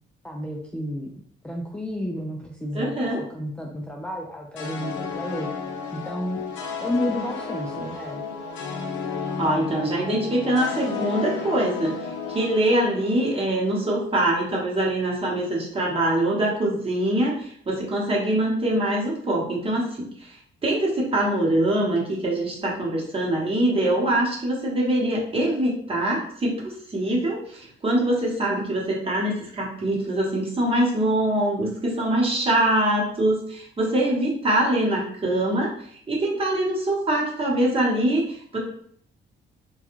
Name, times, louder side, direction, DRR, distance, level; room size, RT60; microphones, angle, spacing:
voice 1, 0.2-1.1 1.4-2.9 3.3-5.5 5.9-6.4 6.8-8.2, equal, 5° left, -1 dB, 0.3 m, -31 dB
voice 2, 2.7-3.2 9.4-12.0 12.3-20.4 20.6-35.7 36.1-38.6, right 1 dB, 30° right, -4 dB, 1.0 m, -23 dB
sound 1, 4.6-13.9, left 5 dB, 70° left, 0.6 m, -33 dB
2.3 x 2.3 x 3.0 m, 0.63 s
cardioid pair, 90°, 20 cm